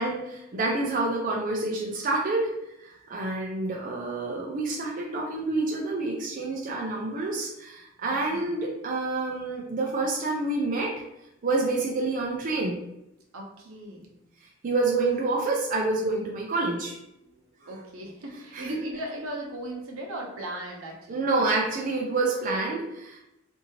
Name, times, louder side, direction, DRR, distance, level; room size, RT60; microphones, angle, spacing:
voice 1, 0.0-2.5 2.8-10.9 11.4-12.8 14.6-16.9 18.5-18.8 21.1-23.2, right 3 dB, 40° right, -2 dB, 0.4 m, -28 dB
voice 2, 8.0-8.6 13.3-14.1 17.2-21.3, right 1 dB, 80° right, -1 dB, 0.7 m, -38 dB
2.7 x 2.6 x 2.9 m, 0.87 s
head